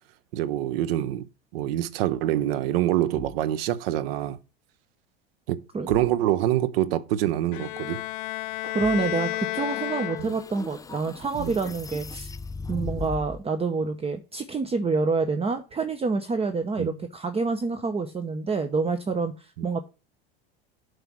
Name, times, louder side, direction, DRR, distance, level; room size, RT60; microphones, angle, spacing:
voice 1, 0.3-1.3 1.5-4.4 5.5-5.6 5.9-8.0 10.2-10.3 11.4-11.5 16.8-16.9 19.6-19.7, right 13 dB, 75° right, 0.9 m, -25 dB
sound 1, 3.1-3.5 5.9-6.2 8.8-9.2 11.3-11.7, left 10 dB, 35° left, 0.8 m, -43 dB
Bowed string instrument, 7.5-10.7, left 17 dB, 70° left, 0.7 m, -32 dB
voice 2, 8.6-12.3 12.7-19.8, right 4 dB, 20° right, 0.9 m, -27 dB
sound 2, 9.4-13.4, left 4 dB, 10° left, 0.5 m, -38 dB
8.0 x 4.9 x 6.2 m
hypercardioid pair, 95°, 29 cm